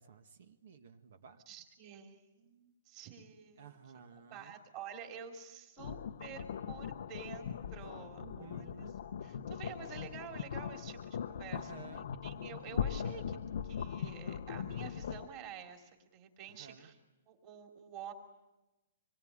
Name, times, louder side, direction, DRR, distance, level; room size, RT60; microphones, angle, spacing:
voice 1, 0.0-1.4 3.6-4.5 8.2-9.0 11.5-12.1 16.5-16.9, right 6 dB, 50° right, 7 dB, 1.8 m, -54 dB
voice 2, 1.5-3.7 4.3-8.7 9.0-11.7 12.2-13.4 13.6-16.9 17.3-18.1, right 7 dB, 20° right, 3 dB, 3.2 m, -49 dB
sound 1, 5.8-15.3, left 8 dB, 50° left, 1.0 m, -40 dB
27.0 x 22.5 x 9.0 m, 0.99 s
hypercardioid pair, 180°, 0 cm